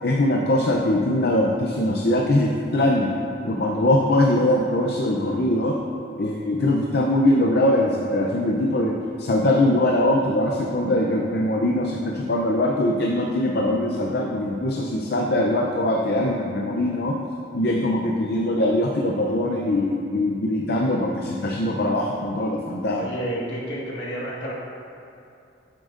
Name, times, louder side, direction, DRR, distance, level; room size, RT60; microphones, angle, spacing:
voice 1, 0.0-3.1 3.4-5.7 6.2-17.1 17.5-23.0, left 1 dB, 60° left, -1 dB, 0.5 m, -22 dB
voice 2, 23.0-24.5, equal, 75° left, -5 dB, 1.6 m, -30 dB
10.0 x 7.5 x 2.5 m, 2.6 s
head